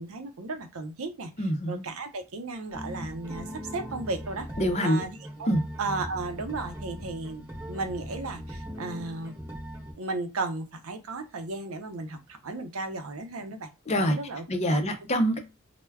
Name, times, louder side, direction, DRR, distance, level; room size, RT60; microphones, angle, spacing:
voice 1, 0.0-4.5 4.8-5.1 5.4-5.5 5.8-9.3 10.0-13.7 14.0-14.8, right 3 dB, 90° right, 7 dB, 0.6 m, -35 dB
voice 2, 1.4-1.8 4.6-5.0 5.5-5.6 13.9-14.2 14.5-15.4, equal, 30° left, 6 dB, 0.5 m, -25 dB
sound 1, 2.7-9.9, equal, 10° right, 0.9 m, -39 dB
2.2 x 2.1 x 3.3 m, 0.28 s
head